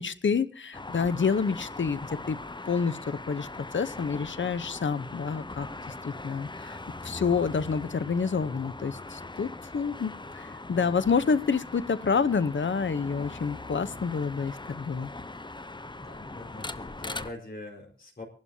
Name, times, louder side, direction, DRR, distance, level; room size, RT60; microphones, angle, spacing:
voice 1, 0.0-2.0 2.3-2.4 2.7-5.7 6.0-15.1, left 5 dB, 85° left, 15 dB, 0.8 m, -28 dB
sound 1, 0.7-17.3, left 2 dB, 25° left, 0.7 m, -41 dB
voice 2, 10.7-11.0 13.7-14.1 16.0-18.2, left 2 dB, 50° left, -1 dB, 4.7 m, -44 dB
25.0 x 12.0 x 2.8 m, 0.42 s
wide cardioid pair, 80°, 19 cm